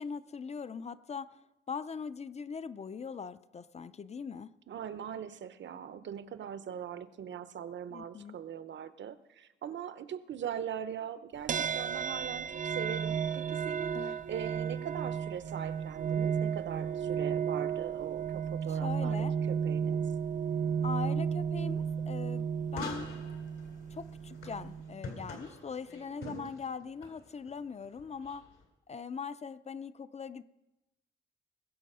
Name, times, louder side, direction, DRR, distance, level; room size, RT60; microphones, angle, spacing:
voice 1, 0.0-1.4 1.7-4.5 7.9-8.4 13.9-14.2 18.7-19.3 20.8-23.1 23.9-28.4 28.9-30.4, left 6 dB, 35° left, 14 dB, 0.4 m, -41 dB
voice 2, 4.7-19.2 19.5-20.0 26.2-26.5, right 9 dB, 65° right, 13 dB, 0.8 m, -41 dB
sound 1, 11.5-25.0, right 7 dB, 40° right, 0.4 m, -33 dB
sound 2, 22.7-28.6, left 3 dB, 80° left, 3.3 m, -47 dB
20.5 x 7.3 x 5.5 m, 0.97 s
wide cardioid pair, 145°, 20 cm